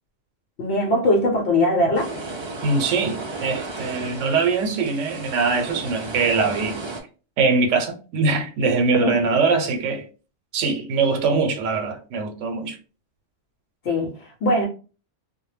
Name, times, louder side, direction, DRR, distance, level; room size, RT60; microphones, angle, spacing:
voice 1, 0.6-2.1 9.0-9.4 13.8-14.6, left 1 dB, 70° left, 0.9 m, -21 dB
sound 1, 1.9-7.0, right 3 dB, 45° right, 0.3 m, -34 dB
voice 2, 2.6-6.8 7.4-10.1 10.5-12.8, right 4 dB, 85° right, 0.9 m, -22 dB
2.2 x 2.1 x 3.1 m
omnidirectional pair, 1.2 m